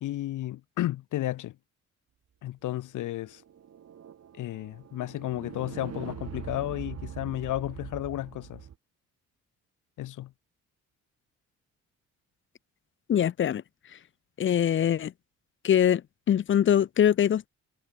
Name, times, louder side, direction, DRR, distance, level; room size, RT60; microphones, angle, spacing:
voice 1, 0.0-1.6 2.4-3.4 4.3-8.7 10.0-10.3, left 14 dB, 80° left, 2.1 m, -33 dB
sound 1, 3.2-8.7, right 9 dB, 55° right, 3.6 m, -43 dB
voice 2, 13.1-13.6 14.4-15.1 15.6-16.0 16.3-17.5, left 9 dB, 40° left, 0.6 m, -23 dB
cardioid pair, 90°, 30 cm